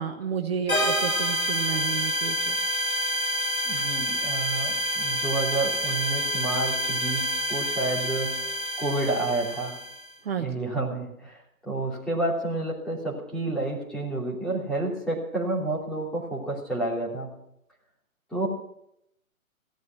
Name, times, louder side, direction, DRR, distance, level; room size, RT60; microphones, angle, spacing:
voice 1, 0.0-2.6 10.2-10.5, right 7 dB, 45° right, 4 dB, 1.3 m, -31 dB
sound 1, 0.7-10.1, equal, 85° left, 7.8 m, -28 dB
voice 2, 3.6-9.8 10.4-17.3 18.3-18.5, right 2 dB, ahead, -5 dB, 3.1 m, -30 dB
16.5 x 13.0 x 5.8 m, 0.77 s
figure-of-eight pair, 135°, 42 cm